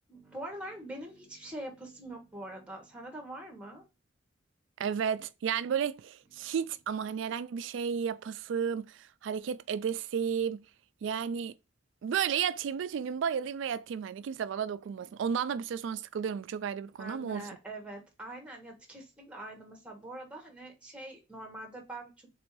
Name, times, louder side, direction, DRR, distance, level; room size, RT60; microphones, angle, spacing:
voice 1, 0.1-3.8 6.4-6.5 17.0-22.3, right 1 dB, 5° right, 1.0 m, -44 dB
voice 2, 4.8-10.6 11.0-11.5 12.0-17.4, right 7 dB, 65° right, 0.3 m, -33 dB
3.7 x 2.6 x 4.5 m
head